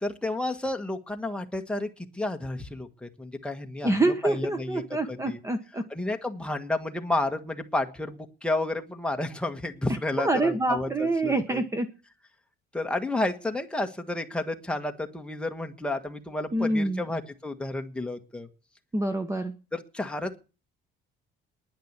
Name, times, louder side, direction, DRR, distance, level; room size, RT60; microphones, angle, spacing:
voice 1, 0.0-3.9 4.2-4.8 5.1-5.4 5.9-11.6 12.7-18.5 19.7-20.4, left 2 dB, 5° left, 4 dB, 1.4 m, -31 dB
voice 2, 3.8-5.9 10.2-11.9 16.5-17.0 18.9-19.5, right 2 dB, 15° right, 9 dB, 1.0 m, -26 dB
10.5 x 10.5 x 8.1 m, 0.34 s
cardioid pair, 155°, 20 cm